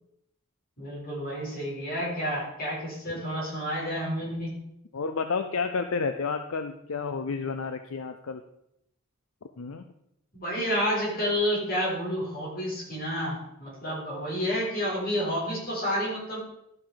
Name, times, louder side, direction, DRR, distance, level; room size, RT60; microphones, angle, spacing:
voice 1, 0.8-4.5 10.3-16.4, equal, 45° left, -5 dB, 4.5 m, -30 dB
voice 2, 4.9-8.4 9.6-9.8, left 5 dB, 70° left, 8 dB, 0.6 m, -30 dB
12.5 x 5.8 x 5.0 m, 0.80 s
head